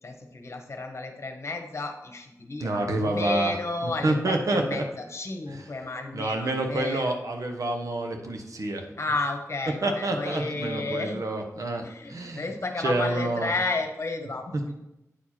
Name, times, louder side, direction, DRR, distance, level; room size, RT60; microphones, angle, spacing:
voice 1, 0.0-7.1 9.0-11.2 11.8-14.7, left 3 dB, 50° left, 4 dB, 1.2 m, -32 dB
voice 2, 2.6-3.5 4.0-4.8 6.1-8.8 9.8-12.4 12.8-13.5, right 2 dB, 70° right, 3 dB, 1.1 m, -28 dB
9.2 x 4.7 x 4.3 m, 0.91 s
wide cardioid pair, 115°, 6 cm